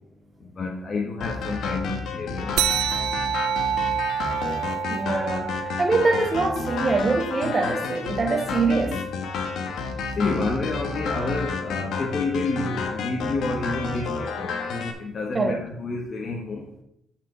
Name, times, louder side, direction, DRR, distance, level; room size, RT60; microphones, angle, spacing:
voice 1, 0.6-2.6 10.2-14.5 15.0-16.6, left 3 dB, 45° left, 1.2 m, -29 dB
sound 1, 1.2-14.9, left 4 dB, 75° left, 1.2 m, -30 dB
sound 2, 2.6-7.5, right 9 dB, 85° right, 0.4 m, -28 dB
voice 2, 4.9-9.0 15.3-15.5, right 3 dB, 30° right, 1.3 m, -24 dB
6.6 x 5.0 x 6.7 m
cardioid pair, 90°, 0 cm